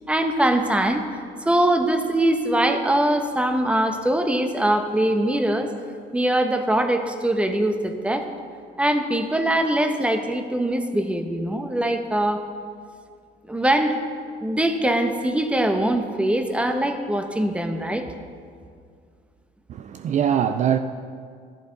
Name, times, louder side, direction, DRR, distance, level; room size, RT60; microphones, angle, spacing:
voice 1, 0.1-5.7 6.1-8.3 8.8-12.4 13.5-13.9 14.4-18.1, right 1 dB, 5° right, 1.0 m, -22 dB
voice 2, 19.7-20.8, right 9 dB, 45° right, 0.4 m, -22 dB
14.0 x 12.0 x 3.9 m
cardioid pair, 110°, 17 cm